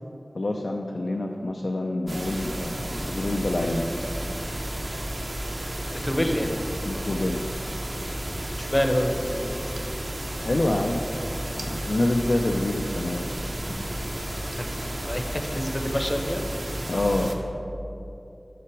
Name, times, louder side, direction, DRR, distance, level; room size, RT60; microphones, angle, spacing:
voice 1, 0.3-3.9 6.9-7.4 10.4-11.0 11.6-13.3 16.9-17.3, left 1 dB, 70° left, 2 dB, 0.4 m, -26 dB
sound 1, 2.1-17.3, right 1 dB, 50° right, 0.7 m, -32 dB
voice 2, 5.9-6.5 8.6-9.7 14.6-16.4, equal, 35° left, 4 dB, 0.7 m, -27 dB
5.9 x 5.9 x 4.6 m, 2.9 s
wide cardioid pair, 50°, 0 cm